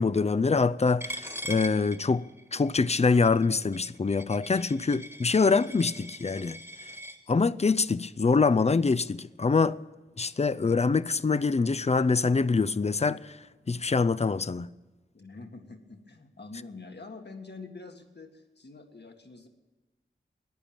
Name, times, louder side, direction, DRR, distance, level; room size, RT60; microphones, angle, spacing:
voice 1, 0.0-6.6 7.3-9.8 10.2-13.4 13.7-14.7, left 4 dB, 35° left, 0.5 m, -25 dB
Coin (dropping), 1.0-7.2, equal, 15° right, 1.5 m, -42 dB
voice 2, 15.1-19.5, left 3 dB, 60° left, 1.8 m, -46 dB
15.0 x 10.5 x 8.8 m
wide cardioid pair, 60°, 19 cm